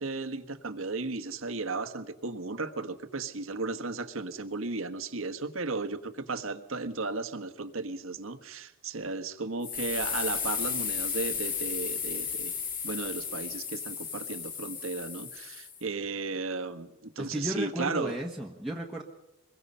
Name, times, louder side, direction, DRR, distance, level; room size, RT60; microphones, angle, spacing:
voice 1, 0.0-12.6 12.8-18.2, right 3 dB, 70° right, 8 dB, 1.4 m, -35 dB
sound 1, 9.6-15.8, left 7 dB, 40° left, 2.5 m, -34 dB
voice 2, 17.2-19.0, equal, ahead, -3 dB, 1.4 m, -34 dB
25.5 x 22.0 x 5.6 m, 0.95 s
head